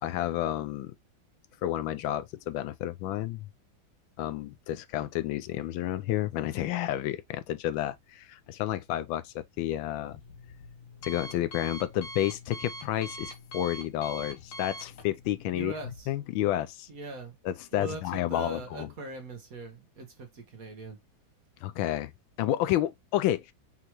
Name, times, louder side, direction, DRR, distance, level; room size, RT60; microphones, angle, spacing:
voice 1, 0.0-0.9 1.6-3.5 4.2-10.2 11.0-15.7 16.1-16.9 17.4-18.9 21.6-22.1 22.4-23.5, left 13 dB, 80° left, 1.3 m, -30 dB
Alarm, 9.6-16.0, equal, 45° left, 1.3 m, -44 dB
voice 2, 15.5-16.1 16.9-17.3 17.7-21.0, right 3 dB, 50° right, 1.4 m, -41 dB
5.7 x 3.0 x 2.9 m
omnidirectional pair, 2.2 m